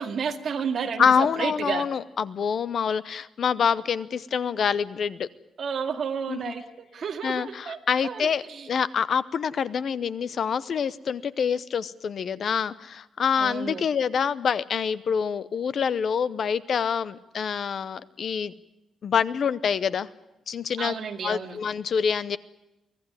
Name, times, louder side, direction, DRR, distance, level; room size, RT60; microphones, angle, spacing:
voice 1, 0.0-1.9 5.6-8.7 13.3-13.8 20.8-21.6, right 6 dB, 45° right, 5 dB, 2.1 m, -31 dB
voice 2, 1.0-5.3 6.3-6.4 7.2-8.4 8.7-18.5 19.0-20.1 20.5-20.9 21.2-22.4, left 7 dB, 45° left, 17 dB, 0.7 m, -26 dB
24.5 x 17.0 x 9.7 m, 0.94 s
cardioid pair, 170°, 0 cm